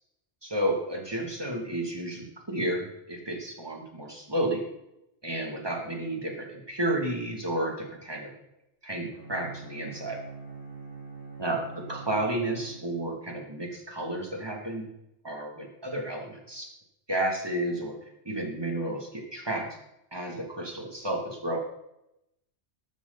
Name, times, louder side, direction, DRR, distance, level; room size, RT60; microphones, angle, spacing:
voice 1, 0.4-4.6 5.2-8.3 8.8-10.2 11.4-14.9 15.2-16.7 17.1-18.0 18.2-19.7 20.1-21.6, right 1 dB, 25° right, 1 dB, 2.7 m, -32 dB
Bowed string instrument, 9.1-13.3, right 4 dB, 60° right, 3.0 m, -44 dB
14.0 x 12.0 x 4.1 m, 0.84 s
omnidirectional pair, 1.1 m